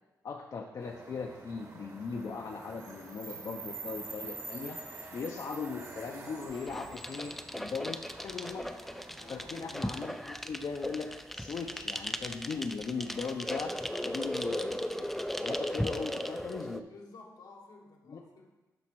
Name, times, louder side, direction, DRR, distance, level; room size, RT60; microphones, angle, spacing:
voice 1, 0.2-4.8 5.1-8.0 8.2-8.6 9.3-11.1 11.3-13.7 14.0-15.1 15.4-16.8 18.1-18.2, left 5 dB, 60° left, 2 dB, 0.7 m, -38 dB
sound 1, 0.8-10.0, right 3 dB, 50° right, 1.7 m, -46 dB
sound 2, 6.5-16.8, equal, 5° left, 0.4 m, -37 dB
voice 2, 9.2-9.6 16.9-18.5, left 3 dB, 80° left, 0 dB, 1.3 m, -53 dB
11.5 x 4.2 x 4.6 m, 1.1 s
cardioid pair, 80°, 7 cm